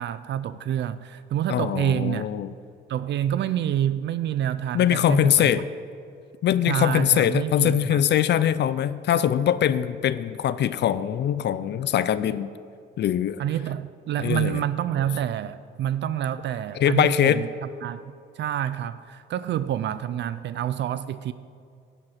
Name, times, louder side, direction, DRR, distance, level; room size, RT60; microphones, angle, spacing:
voice 1, 0.0-2.3 2.9-5.5 6.7-8.0 13.4-17.5 17.8-18.0 18.4-21.3, right 11 dB, 65° right, 14 dB, 0.4 m, -27 dB
voice 2, 1.5-2.5 4.7-5.6 6.4-12.5 13.0-13.4 14.2-14.6 16.7-17.4, left 10 dB, 60° left, 15 dB, 0.5 m, -22 dB
11.0 x 7.6 x 5.8 m, 2.4 s
cardioid pair, 90°, 20 cm